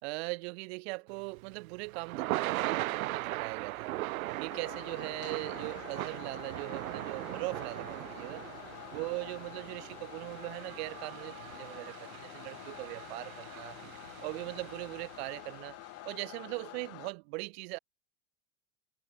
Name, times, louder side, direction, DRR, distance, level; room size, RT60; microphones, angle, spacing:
voice 1, 0.0-4.0 4.4-8.4 8.9-13.8 14.2-15.8 16.0-17.8, right 28 dB, 50° right, 1.9 m, -40 dB
Thunder / Rain, 1.2-15.4, right 17 dB, 80° right, 1.1 m, -39 dB
sound 1, 4.5-17.1, left 20 dB, 35° left, 4.4 m, -48 dB
supercardioid pair, 165°, 41 cm